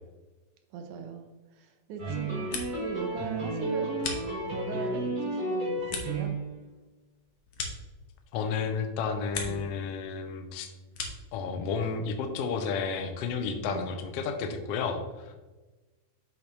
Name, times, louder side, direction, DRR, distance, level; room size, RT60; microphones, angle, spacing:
voice 1, 0.7-6.3 9.4-9.6 13.6-13.9, right 5 dB, 80° right, 5 dB, 2.2 m, -39 dB
sound 1, 2.0-6.6, right 2 dB, 30° right, 0.8 m, -32 dB
sound 2, 2.2-3.0 3.3-4.8 5.2-8.5 8.8-9.8 10.1-11.4, left 4 dB, 65° left, 1.3 m, -40 dB
voice 2, 8.3-10.7 11.3-15.4, left 5 dB, 85° left, 6 dB, 1.3 m, -32 dB
8.5 x 6.3 x 3.1 m, 1.2 s
omnidirectional pair, 3.6 m